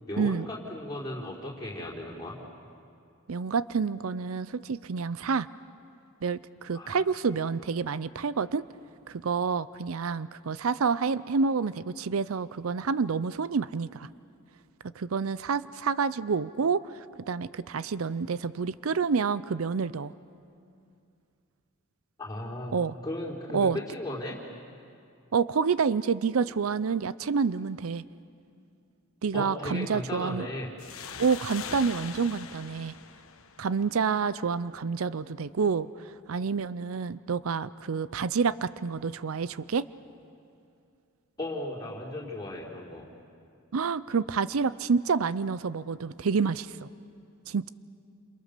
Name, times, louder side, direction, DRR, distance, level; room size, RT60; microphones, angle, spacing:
voice 1, 0.1-2.4 6.7-7.0 22.2-22.7 23.0-24.4 29.3-30.7 41.4-43.0, left 1 dB, 20° left, -5 dB, 4.2 m, -36 dB
voice 2, 3.3-5.5 6.2-8.7 9.1-14.1 15.0-16.9 17.3-20.1 22.7-22.9 23.5-23.8 25.3-28.0 29.2-30.5 31.2-32.9 33.6-35.9 36.3-39.9 43.7-46.9 47.5-47.7, right 5 dB, 85° right, 16 dB, 0.5 m, -28 dB
sound 1, 30.8-34.2, left 7 dB, 85° left, 1.3 m, -42 dB
29.5 x 27.5 x 6.7 m, 2.5 s
head